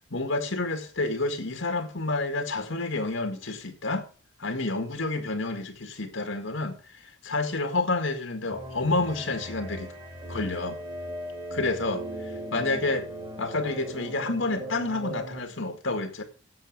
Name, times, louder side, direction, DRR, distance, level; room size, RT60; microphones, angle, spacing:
voice 1, 0.1-4.1 4.4-9.9 10.3-10.8 11.5-13.1 13.4-16.2, left 2 dB, 70° left, 1.9 m, -29 dB
sound 1, 8.5-15.4, right 1 dB, 20° right, 2.5 m, -38 dB
7.9 x 7.8 x 7.5 m
head